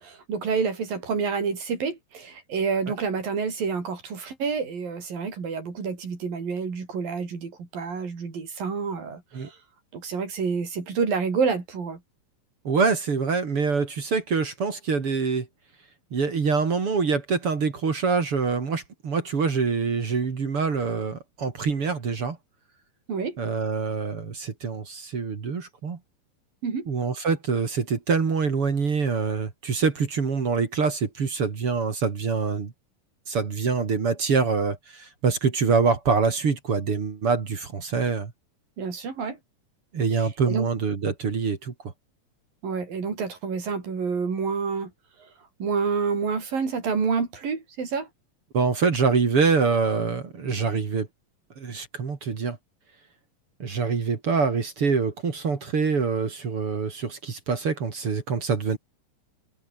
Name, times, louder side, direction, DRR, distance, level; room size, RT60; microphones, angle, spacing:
voice 1, 0.0-9.6 9.9-12.0 23.1-23.4 26.6-26.9 38.8-39.4 40.2-40.7 42.6-44.9 45.6-48.1, right 5 dB, 85° right, 6.9 m, -28 dB
voice 2, 12.6-15.5 16.1-22.4 23.4-26.0 26.9-32.7 33.3-38.3 39.9-41.7 48.5-51.1 51.6-52.6 53.6-58.8, right 5 dB, 40° right, 3.3 m, -25 dB
omnidirectional pair, 3.9 m